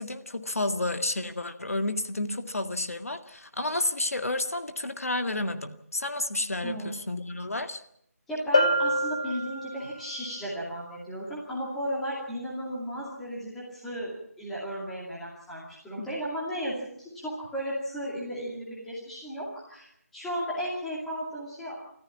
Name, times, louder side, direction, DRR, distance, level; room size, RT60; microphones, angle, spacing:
voice 1, 0.0-7.8 16.0-16.1, left 2 dB, 65° left, 7 dB, 2.0 m, -31 dB
voice 2, 6.6-7.0 8.3-19.9 20.1-21.7, equal, ahead, -7 dB, 2.4 m, -35 dB
Bell, 8.5-10.1, left 1 dB, 20° left, 1.1 m, -26 dB
24.5 x 14.5 x 8.5 m, 0.73 s
figure-of-eight pair, 180°, 8 cm